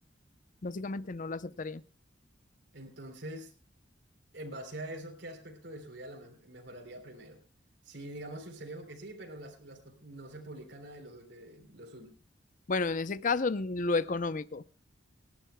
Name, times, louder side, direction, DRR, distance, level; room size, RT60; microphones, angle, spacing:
voice 1, 0.6-1.8 12.7-14.6, left 3 dB, 45° left, 0.6 m, -31 dB
voice 2, 2.7-3.5 4.3-7.4 7.8-12.1, right 1 dB, 65° right, 3.5 m, -45 dB
29.0 x 11.5 x 2.2 m
head